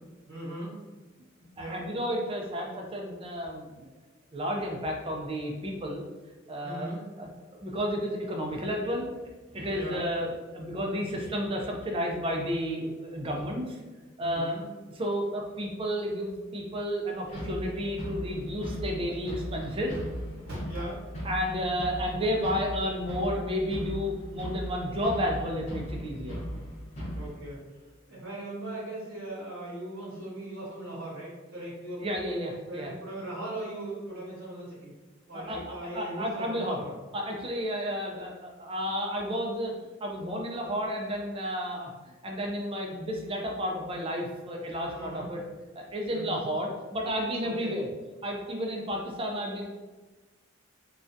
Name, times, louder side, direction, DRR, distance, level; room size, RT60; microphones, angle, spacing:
voice 1, 0.3-0.8 1.6-1.8 6.6-7.0 9.7-10.0 14.2-14.6 20.5-21.0 27.1-32.4 32.7-35.0 35.3-36.9 44.9-45.3 46.1-46.4 47.4-47.8, right 1 dB, 60° right, -9 dB, 0.8 m, -39 dB
voice 2, 1.6-3.9 4.3-6.0 6.5-6.9 7.2-7.3 7.6-9.1 9.5-13.8 14.2-14.5 15.0-20.0 21.2-26.4 32.0-32.9 35.3-36.8 37.1-41.9 42.2-45.4 45.8-47.9 48.2-49.7, equal, 30° right, 0 dB, 0.4 m, -32 dB
sound 1, 17.3-27.3, equal, 35° left, 0.7 m, -38 dB
2.3 x 2.2 x 2.5 m, 1.2 s
head